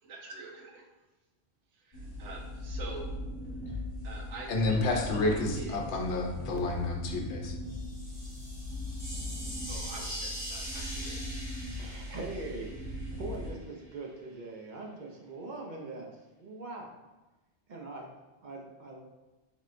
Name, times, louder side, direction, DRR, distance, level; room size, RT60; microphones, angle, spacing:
voice 1, 0.0-0.7 1.7-3.1 4.0-6.0 6.5-6.6 9.7-11.2, right 3 dB, 85° right, 1 dB, 1.0 m, -46 dB
sound 1, 1.9-13.5, left 1 dB, 45° left, 1.4 m, -39 dB
voice 2, 4.5-7.6, left 2 dB, 80° left, 2 dB, 0.9 m, -30 dB
sound 2, 7.6-13.5, equal, 35° right, 1.5 m, -43 dB
voice 3, 11.7-17.0 17.7-18.1 18.4-19.0, right 2 dB, 50° right, 0 dB, 0.6 m, -42 dB
4.2 x 3.7 x 2.5 m, 1.1 s
omnidirectional pair, 1.2 m